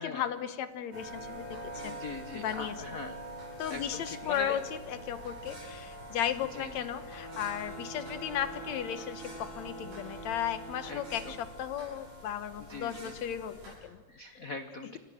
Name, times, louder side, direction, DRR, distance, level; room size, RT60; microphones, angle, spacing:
voice 1, 0.0-2.7 3.6-14.0, left 10 dB, 70° left, 12 dB, 2.4 m, -35 dB
sound 1, 0.9-13.8, right 1 dB, 75° right, 8.2 m, -45 dB
voice 2, 1.8-3.2 3.7-4.6 6.5-6.9 10.9-11.3 12.7-13.2 14.1-15.0, left 3 dB, 55° left, 9 dB, 0.9 m, -41 dB
sound 2, 7.0-11.5, right 2 dB, 10° right, 4.0 m, -46 dB
29.0 x 24.0 x 6.5 m, 1.2 s
omnidirectional pair, 3.3 m